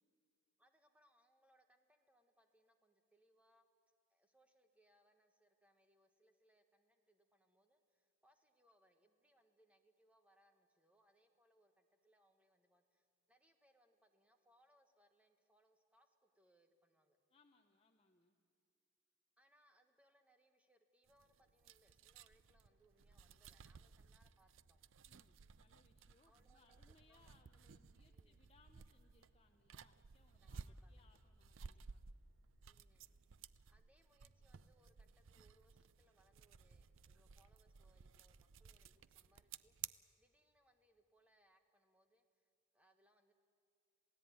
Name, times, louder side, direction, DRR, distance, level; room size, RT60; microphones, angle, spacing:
voice 1, 0.6-3.7 4.1-17.2 19.4-24.8 26.3-27.4 28.1-28.5 30.4-31.1 32.6-33.1 33.7-39.8 40.2-43.3, equal, 5° right, 6 dB, 1.4 m, -75 dB
voice 2, 17.3-18.4 25.1-32.0, left 3 dB, 25° left, 4 dB, 0.8 m, -73 dB
sound 1, 21.1-39.9, right 7 dB, 65° right, 0.6 m, -57 dB
27.0 x 17.0 x 9.3 m, 2.4 s
head